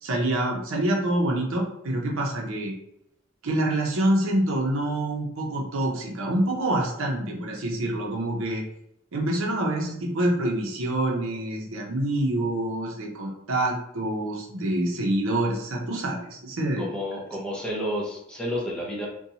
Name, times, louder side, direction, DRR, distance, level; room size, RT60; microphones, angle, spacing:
voice 1, 0.0-2.7 3.4-8.6 9.1-16.9, right 1 dB, 75° right, -1 dB, 0.6 m, -26 dB
voice 2, 16.8-19.1, equal, 5° left, -4 dB, 0.6 m, -30 dB
2.6 x 2.2 x 2.8 m, 0.76 s
head